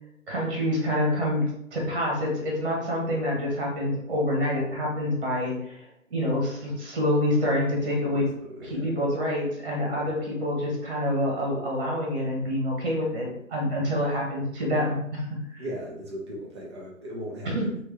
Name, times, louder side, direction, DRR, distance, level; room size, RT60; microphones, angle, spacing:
voice 1, 0.3-1.4 1.7-8.2 8.6-15.3 15.5-15.6 17.4-17.7, left 1 dB, 40° right, -2 dB, 1.4 m, -27 dB
voice 2, 7.9-8.9 15.6-17.8, equal, 20° right, -4 dB, 0.7 m, -38 dB
3.3 x 3.0 x 3.2 m, 0.75 s
figure-of-eight pair, 140°, 41 cm